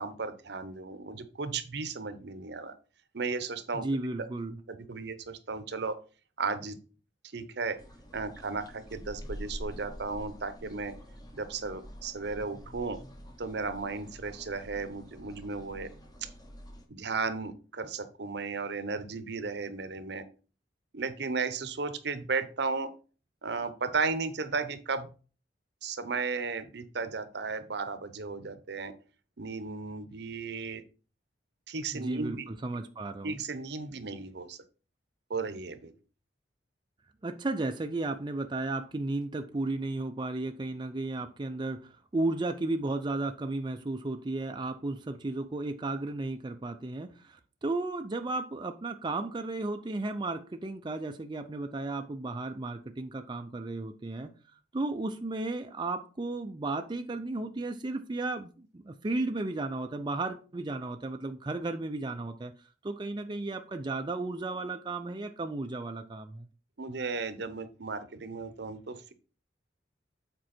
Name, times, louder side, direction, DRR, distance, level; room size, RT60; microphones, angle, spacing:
voice 1, 0.0-2.7 3.1-3.9 4.7-6.0 6.4-6.8 7.3-7.8 8.1-11.0 11.3-13.0 13.4-15.9 16.9-20.2 20.9-22.9 23.4-25.1 25.8-28.9 29.4-30.8 31.7-32.5 33.2-34.6 35.3-35.9 66.8-69.1, right 4 dB, 65° right, 12 dB, 0.8 m, -35 dB
voice 2, 3.7-4.6 31.9-33.4 37.2-54.3 54.7-62.5 62.8-66.5, right 2 dB, 25° right, 6 dB, 0.5 m, -34 dB
sound 1, 7.8-16.8, equal, 20° left, 1.1 m, -46 dB
7.8 x 4.6 x 4.3 m, 0.37 s
head